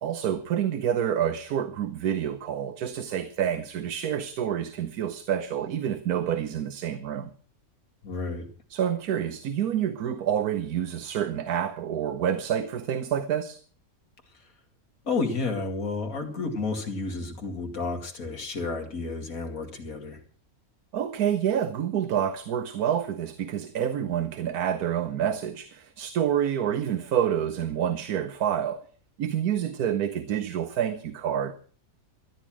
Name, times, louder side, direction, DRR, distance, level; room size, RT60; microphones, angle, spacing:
voice 1, 0.0-7.3 8.7-13.6 20.9-28.8 29.2-31.5, right 9 dB, 85° right, 1.4 m, -28 dB
voice 2, 8.0-8.5 15.1-20.2, left 3 dB, 70° left, 2.7 m, -31 dB
13.5 x 10.5 x 6.1 m
omnidirectional pair, 1.6 m